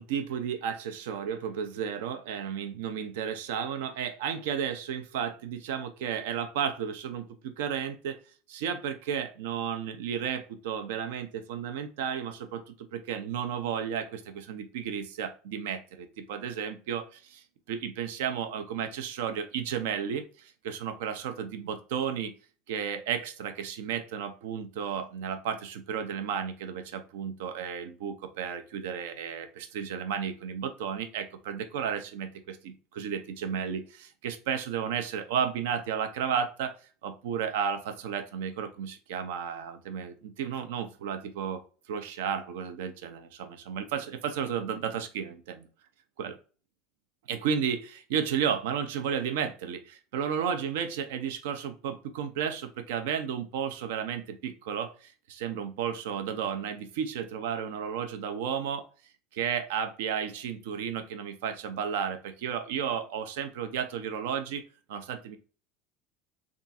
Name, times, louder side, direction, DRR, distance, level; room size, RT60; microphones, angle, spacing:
voice 1, 0.0-8.2 8.5-22.3 22.7-41.6 41.9-45.7 46.2-46.4 47.3-58.8 59.3-64.6 64.9-65.4, right 8 dB, 85° right, 8 dB, 0.6 m, -33 dB
3.6 x 2.5 x 4.0 m, 0.37 s
cardioid pair, 165°, 0 cm